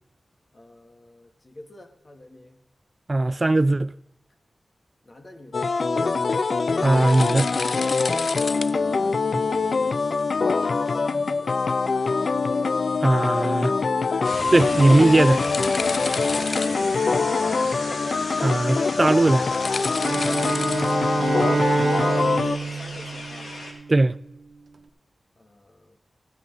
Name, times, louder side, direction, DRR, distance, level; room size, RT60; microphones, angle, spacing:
voice 1, 0.5-2.6 5.0-5.8 8.0-10.0 10.9-12.1 16.0-17.7 21.1-23.5 25.3-26.0, left 1 dB, 45° left, 1.7 m, -46 dB
voice 2, 3.1-3.9 6.8-7.5 13.0-13.7 14.5-15.4 18.4-19.5 23.9-24.1, right 2 dB, 35° right, 0.3 m, -19 dB
sound 1, 5.5-22.6, left 4 dB, 65° left, 0.3 m, -24 dB
sound 2, 14.2-23.7, left 2 dB, 85° left, 2.2 m, -35 dB
Bowed string instrument, 20.0-24.2, right 4 dB, 65° right, 0.7 m, -27 dB
14.5 x 9.2 x 3.9 m
wide cardioid pair, 65°, 0 cm